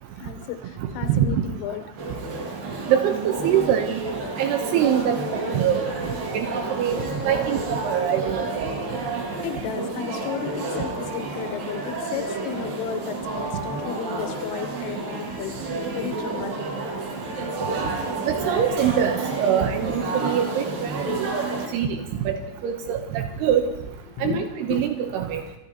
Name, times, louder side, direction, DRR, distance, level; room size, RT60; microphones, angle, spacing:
voice 1, 0.2-1.9 9.4-15.5 15.9-16.5 24.2-24.9, left 9 dB, 80° left, 8 dB, 3.5 m, -33 dB
voice 2, 1.1-1.4 2.9-4.0 4.4-5.9 6.3-7.0 7.2-8.7 18.3-21.4 21.7-22.0 22.3-22.4 22.6-23.7 24.2-25.4, right 9 dB, 90° right, 5 dB, 2.3 m, -24 dB
sound 1, 2.0-21.7, right 3 dB, 55° right, 3.4 m, -30 dB
27.5 x 14.5 x 2.9 m, 0.87 s
omnidirectional pair, 5.8 m